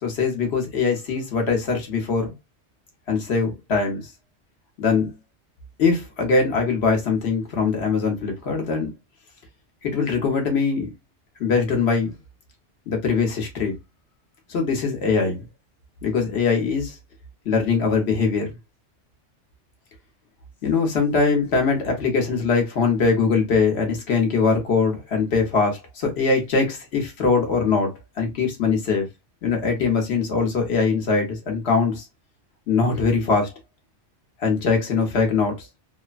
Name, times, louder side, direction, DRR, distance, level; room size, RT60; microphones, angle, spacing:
voice 1, 0.0-2.3 3.1-4.0 4.8-5.1 5.8-8.9 9.8-10.9 11.4-12.1 12.9-13.7 14.5-15.4 16.0-17.0 17.4-18.6 20.6-29.1 29.4-32.0 32.7-33.5 34.4-35.7, left 4 dB, 65° left, 1.1 m, -22 dB
3.2 x 2.1 x 2.4 m
omnidirectional pair, 1.2 m